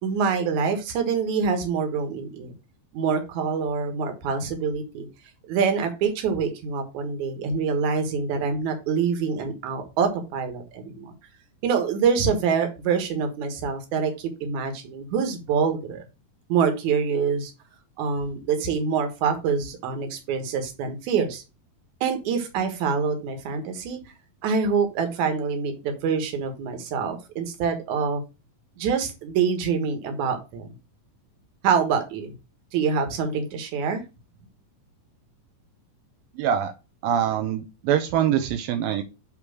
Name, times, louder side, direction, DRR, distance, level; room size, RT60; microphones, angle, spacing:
voice 1, 0.0-2.5 2.9-5.1 5.5-11.1 11.6-16.0 16.5-17.5 18.0-21.4 22.0-24.0 24.4-28.2 28.8-30.7 31.6-32.3 32.7-34.0, right 6 dB, 60° right, 5 dB, 2.7 m, -25 dB
voice 2, 36.4-36.7 37.0-39.0, right 9 dB, 85° right, 7 dB, 2.5 m, -24 dB
8.6 x 3.3 x 6.1 m, 0.28 s
omnidirectional pair, 4.2 m